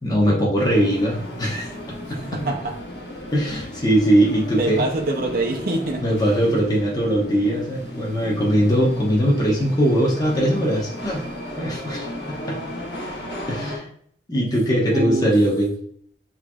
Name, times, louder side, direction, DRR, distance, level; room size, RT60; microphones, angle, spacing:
voice 1, 0.0-1.7 2.1-2.2 3.3-4.9 6.0-11.2 11.6-12.6 13.5-13.9 14.3-15.7, equal, 20° left, -3 dB, 1.1 m, -20 dB
sound 1, 0.6-13.8, equal, 65° left, 1.4 m, -35 dB
voice 2, 2.2-2.7 4.6-6.0 14.9-15.3, right 2 dB, 55° right, 2 dB, 0.6 m, -25 dB
6.6 x 3.1 x 2.3 m, 0.62 s
head